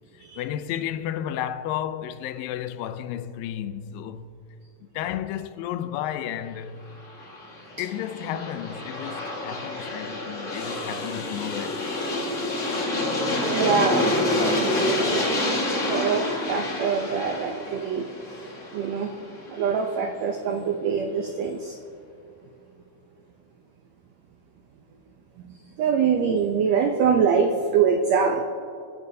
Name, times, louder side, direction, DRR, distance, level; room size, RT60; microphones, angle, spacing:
voice 1, 0.1-4.4 4.9-6.9 7.8-12.9, left 11 dB, 85° left, 2.4 m, -33 dB
Aircraft, 7.0-19.8, left 2 dB, 40° left, 1.2 m, -28 dB
voice 2, 13.4-15.4 15.8-18.1 18.7-19.1 19.5-21.8 25.8-28.4, right 6 dB, 85° right, 1.5 m, -24 dB
25.5 x 11.0 x 2.7 m
omnidirectional pair, 4.0 m